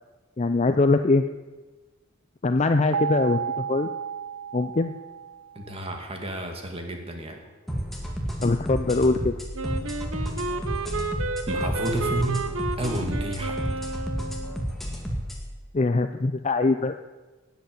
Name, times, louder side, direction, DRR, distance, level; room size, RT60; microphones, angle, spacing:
voice 1, 0.4-1.2 2.4-3.9 4.5-4.9 8.4-9.3 15.7-16.9, left 3 dB, 30° left, 8 dB, 0.5 m, -22 dB
sound 1, 2.9-5.9, right 7 dB, 85° right, 0.4 m, -32 dB
voice 2, 5.6-7.4 11.5-12.4 12.8-13.6, right 1 dB, 25° right, 3 dB, 2.2 m, -31 dB
sound 2, 7.7-15.4, equal, ahead, 2.0 m, -31 dB
Wind instrument woodwind instrument, 9.5-14.6, right 3 dB, 70° right, 1.1 m, -32 dB
19.0 x 8.1 x 7.8 m, 1.2 s
head